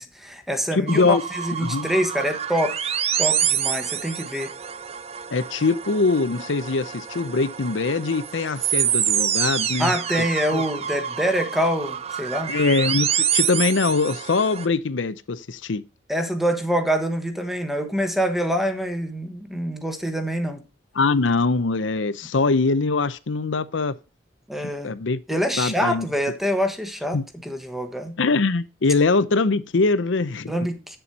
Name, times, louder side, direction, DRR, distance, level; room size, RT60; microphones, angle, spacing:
voice 1, 0.0-2.9 3.2-4.5 9.8-12.6 16.1-20.6 24.5-24.9 25.3-28.2 30.5-31.0, equal, ahead, 1.1 m, -25 dB
voice 2, 0.7-1.2 1.6-1.9 5.3-9.9 10.5-10.6 12.5-15.8 20.9-23.9 24.6-26.1 27.1-27.2 28.2-30.5, left 3 dB, 80° left, 0.7 m, -22 dB
sound 1, 0.9-14.7, right 9 dB, 35° right, 0.5 m, -27 dB
9.0 x 7.0 x 4.2 m
head